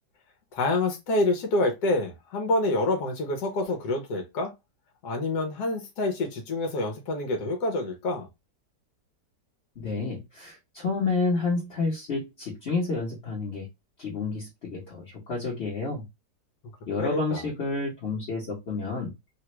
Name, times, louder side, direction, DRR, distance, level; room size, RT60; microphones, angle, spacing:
voice 1, 0.5-4.5 5.0-8.3 17.0-17.4, left 2 dB, 70° left, 1.4 m, -27 dB
voice 2, 9.8-13.7 14.0-16.0 16.9-19.1, left 3 dB, 45° left, 1.1 m, -30 dB
3.2 x 2.3 x 2.9 m
omnidirectional pair, 1.8 m